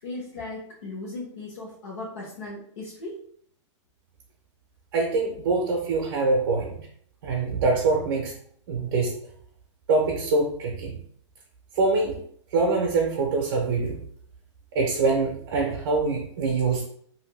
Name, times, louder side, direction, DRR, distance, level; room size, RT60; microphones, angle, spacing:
voice 1, 0.0-3.2, left 2 dB, 70° left, -7 dB, 1.1 m, -37 dB
voice 2, 4.9-6.8 7.2-8.3 8.7-9.1 9.9-11.0 11.8-12.2 12.5-14.0 14.7-16.8, right 3 dB, 45° right, 0 dB, 0.5 m, -24 dB
2.6 x 2.6 x 3.1 m, 0.63 s
supercardioid pair, 180°, 16 cm